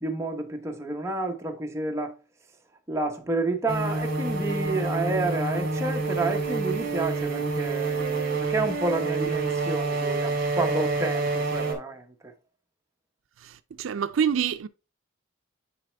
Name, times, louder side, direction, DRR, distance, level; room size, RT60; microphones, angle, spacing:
voice 1, 0.0-2.1 2.9-12.3, right 2 dB, 15° right, 0.9 m, -30 dB
sound 1, 3.7-11.7, right 3 dB, 45° right, 2.1 m, -28 dB
voice 2, 13.8-14.7, right 7 dB, 75° right, 0.4 m, -26 dB
9.5 x 4.2 x 3.3 m
head